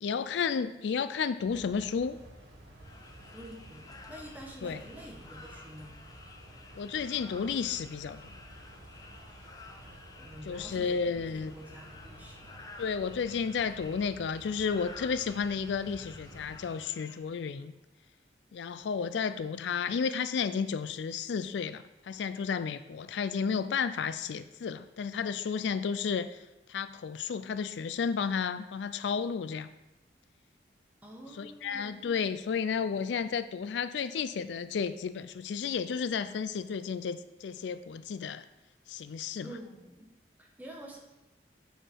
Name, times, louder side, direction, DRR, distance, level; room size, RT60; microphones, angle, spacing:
voice 1, 0.0-2.2 4.6-4.8 6.8-8.2 10.5-11.5 12.8-17.7 18.5-26.4 26.7-29.7 31.4-38.4 38.9-39.5, left 6 dB, 75° left, 13 dB, 0.4 m, -32 dB
sound 1, 1.4-16.7, right 1 dB, 80° right, 2.5 m, -52 dB
sound 2, 2.8-17.2, left 3 dB, 20° left, 0.6 m, -52 dB
voice 2, 3.3-6.0 10.2-12.6 31.0-32.0 39.4-40.1 40.4-41.0, right 1 dB, 10° right, -1 dB, 1.3 m, -48 dB
9.0 x 4.8 x 4.6 m, 1.0 s
head